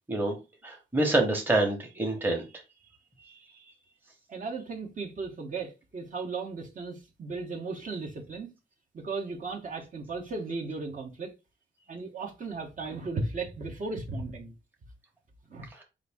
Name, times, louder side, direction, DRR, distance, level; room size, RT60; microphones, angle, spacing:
voice 1, 0.6-2.4, right 2 dB, 10° right, 1.0 m, -26 dB
voice 2, 4.3-8.5 8.9-11.3 11.9-14.5 15.5-15.7, right 3 dB, 40° right, 0.9 m, -36 dB
5.0 x 2.6 x 3.4 m
wide cardioid pair, 165°, 20 cm